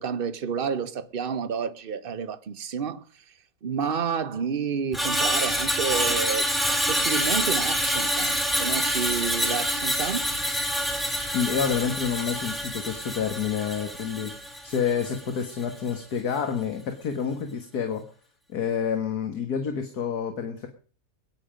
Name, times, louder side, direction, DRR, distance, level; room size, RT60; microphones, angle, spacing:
voice 1, 0.0-3.3 3.6-6.5 6.9-10.3, right 6 dB, 35° right, 1.1 m, -30 dB
Screech, 4.9-15.3 15.6-15.9, equal, ahead, 2.6 m, -27 dB
voice 2, 11.3-14.3 14.6-18.0 18.5-20.7, left 7 dB, 60° left, 2.0 m, -28 dB
21.5 x 9.9 x 5.2 m
omnidirectional pair, 1.9 m